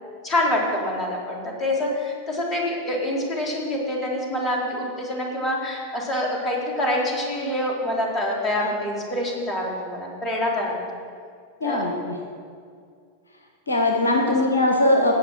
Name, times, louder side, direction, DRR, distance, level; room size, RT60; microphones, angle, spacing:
voice 1, 0.2-10.8 11.6-11.8 14.3-14.4, left 1 dB, 20° left, -2 dB, 3.6 m, -26 dB
voice 2, 11.6-12.2 13.7-15.1, left 1 dB, 75° left, 2 dB, 1.2 m, -20 dB
17.5 x 5.9 x 7.4 m, 2.3 s
figure-of-eight pair, 90°, 0 cm